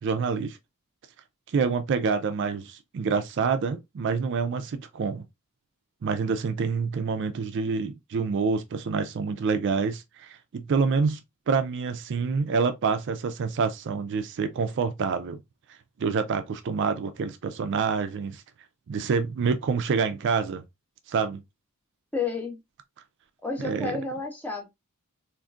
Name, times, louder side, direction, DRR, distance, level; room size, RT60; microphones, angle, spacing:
voice 1, 0.0-0.6 1.5-5.2 6.0-15.4 15.7-18.4 18.9-20.6 21.1-21.4 23.6-24.0, right 5 dB, 55° right, 0.4 m, -27 dB
voice 2, 22.1-22.6 23.4-24.7, left 4 dB, 10° left, 0.8 m, -31 dB
3.7 x 2.5 x 2.4 m
head